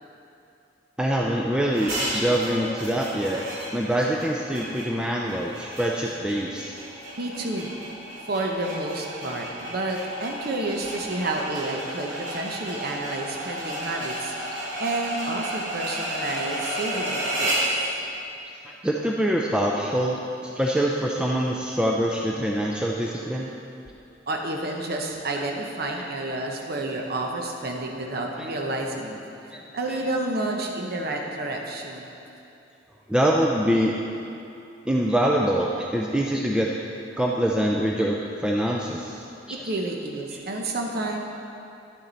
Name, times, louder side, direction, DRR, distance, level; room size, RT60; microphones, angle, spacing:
voice 1, 1.0-3.4 3.7-6.7 9.3-9.4 18.6-23.5 25.3-25.4 25.9-26.0 28.4-28.5 29.5-29.6 29.9-30.0 33.1-33.9 34.9-36.8 37.2-39.2 39.5-39.6 40.3-40.4, right 1 dB, 5° right, -2 dB, 0.4 m, -24 dB
sound 1, 1.7-17.8, right 1 dB, 75° right, 2.3 m, -32 dB
voice 2, 7.2-7.7 8.3-17.7 24.3-29.2 29.7-32.1 39.5-41.2, right 2 dB, 55° right, 1 dB, 0.9 m, -30 dB
11.5 x 7.2 x 4.0 m, 2.7 s
head